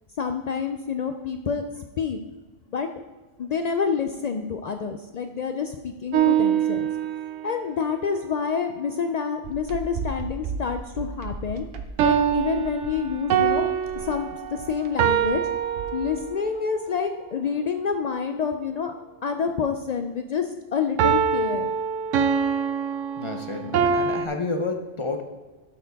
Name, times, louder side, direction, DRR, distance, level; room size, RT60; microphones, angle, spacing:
voice 1, 0.2-2.2 2.7-2.9 3.4-6.9 7.4-11.7 12.0-13.7 13.9-15.4 15.9-18.9 19.2-21.7, left 6 dB, 90° left, 6 dB, 0.3 m, -28 dB
sound 1, 6.1-7.5 12.0-16.5 21.0-24.3, right 8 dB, 85° right, 0.9 m, -24 dB
sound 2, 9.4-16.3, right 5 dB, 60° right, 0.8 m, -36 dB
voice 2, 23.2-25.2, left 3 dB, 35° left, 4 dB, 0.5 m, -30 dB
12.0 x 4.3 x 4.0 m, 1.2 s
omnidirectional pair, 1.3 m